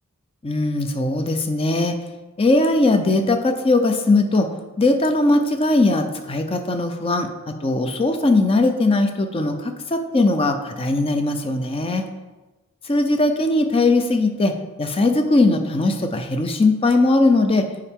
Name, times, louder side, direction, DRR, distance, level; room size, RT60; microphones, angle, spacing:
voice 1, 0.4-1.9 2.4-4.5 4.8-12.0 12.8-17.7, left 2 dB, 25° left, 6 dB, 0.5 m, -19 dB
7.1 x 4.8 x 3.6 m, 1.2 s
head